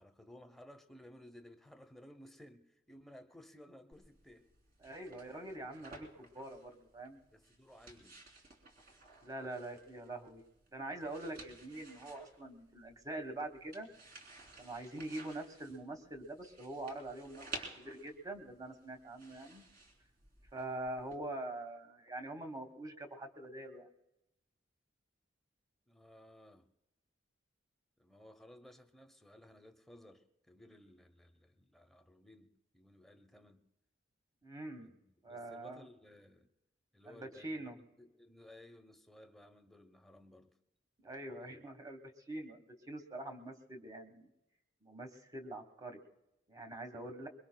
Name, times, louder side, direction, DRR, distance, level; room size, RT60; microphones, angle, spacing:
voice 1, 0.0-4.5 5.2-5.4 7.3-8.2 25.9-26.7 28.0-33.7 34.8-36.5 36.9-40.6 41.4-41.6, left 1 dB, ahead, 0.8 m, -58 dB
sound 1, 3.9-21.2, right 3 dB, 50° right, 3.1 m, -55 dB
voice 2, 4.8-7.2 9.2-10.4 10.7-13.9 14.6-19.6 20.5-23.9 34.4-34.9 35.2-35.8 37.1-37.8 41.0-42.0 42.3-44.3 44.8-46.0 46.5-47.3, right 2 dB, 20° right, 1.3 m, -44 dB
24.0 x 22.5 x 2.2 m
head